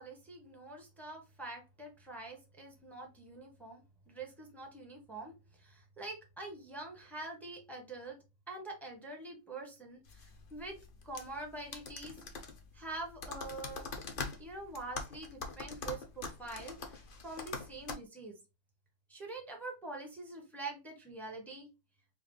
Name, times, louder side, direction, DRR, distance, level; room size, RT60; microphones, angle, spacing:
voice 1, 0.0-5.3 5.6-8.2 8.5-10.8 11.0-12.2 12.7-13.9 14.4-18.4 19.1-21.7, right 2 dB, ahead, 1 dB, 0.8 m, -45 dB
sound 1, 10.0-18.0, left 4 dB, 75° left, 0.4 m, -44 dB
4.9 x 2.5 x 3.2 m, 0.26 s
omnidirectional pair, 2.0 m